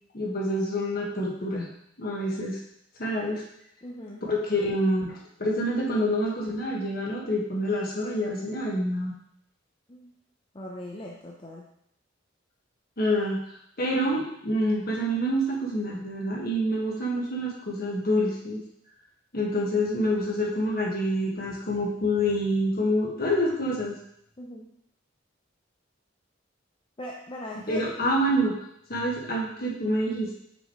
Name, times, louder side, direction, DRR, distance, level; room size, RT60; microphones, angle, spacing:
voice 1, 0.1-1.7 2.0-2.6 3.0-3.4 4.2-9.1 13.0-13.4 13.8-18.6 19.3-24.0 27.7-28.5 28.9-30.3, equal, 50° left, -3 dB, 1.7 m, -27 dB
voice 2, 3.8-4.2 9.9-10.1 10.5-11.7 24.4-24.7 27.0-27.8, left 1 dB, 25° left, -2 dB, 0.6 m, -40 dB
6.9 x 6.1 x 3.1 m, 0.72 s
head